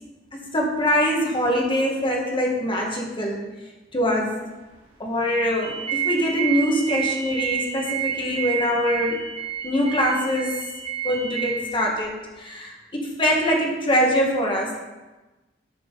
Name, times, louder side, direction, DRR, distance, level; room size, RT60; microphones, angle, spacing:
voice 1, 0.3-3.4 3.9-4.4 5.0-9.2 9.6-10.6 11.0-14.8, equal, 30° left, -1 dB, 1.9 m, -23 dB
sound 1, 5.6-11.5, right 9 dB, 35° right, 2.6 m, -29 dB
11.5 x 6.2 x 4.1 m, 1.1 s
head